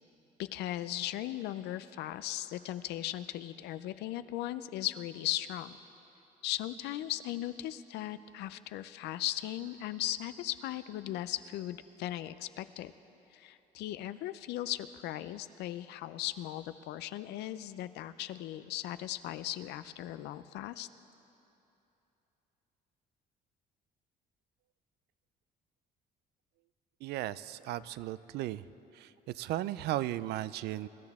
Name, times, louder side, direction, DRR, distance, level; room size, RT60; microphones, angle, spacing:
voice 1, 0.4-5.8 6.4-12.9 13.3-20.9, left 14 dB, 80° left, 13 dB, 0.5 m, -37 dB
voice 2, 27.0-28.7 28.9-30.9, right 14 dB, 75° right, 17 dB, 0.4 m, -36 dB
23.5 x 12.5 x 3.6 m, 3.0 s
cardioid pair, 110°, 17 cm